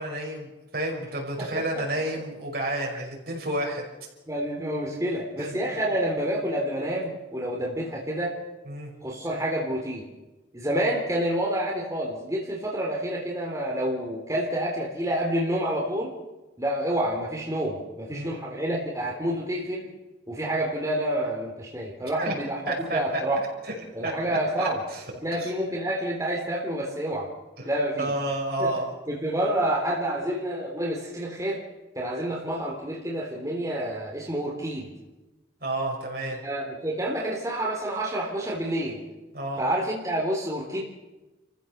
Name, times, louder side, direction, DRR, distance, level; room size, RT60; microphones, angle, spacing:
voice 1, 0.0-3.8 5.4-5.5 5.8-6.0 8.6-8.9 18.1-18.3 22.1-22.3 22.7-23.0 23.6-23.8 24.0-25.0 25.4-25.5 27.6-27.7 28.0-28.9 35.6-36.4 39.3-39.7, right 1 dB, 55° right, 1 dB, 5.8 m, -31 dB
voice 2, 4.3-8.4 9.0-10.1 10.5-16.1 16.6-19.9 20.3-23.4 23.9-24.8 25.2-27.3 27.7-28.1 28.6-28.7 29.1-31.6 32.0-34.9 36.4-39.0 39.6-40.8, right 1 dB, 15° right, -3 dB, 3.6 m, -28 dB
30.0 x 15.0 x 6.8 m, 1.1 s
head